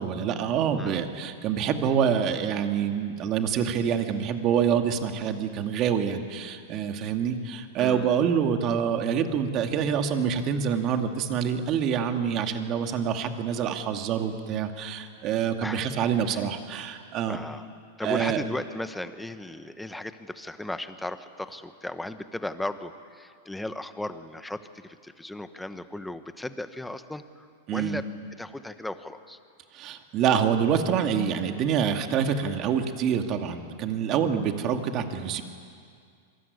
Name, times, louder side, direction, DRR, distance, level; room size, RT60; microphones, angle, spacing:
voice 1, 0.0-17.4 18.0-18.4 27.7-28.0 29.7-35.4, right 7 dB, 35° right, 5 dB, 2.3 m, -26 dB
voice 2, 7.8-8.1 15.6-15.9 16.3-16.4 17.3-17.7 18.0-28.1 28.4-29.4, left 1 dB, 5° left, 10 dB, 1.1 m, -36 dB
26.5 x 23.5 x 9.7 m, 2.2 s
supercardioid pair, 145°, 0 cm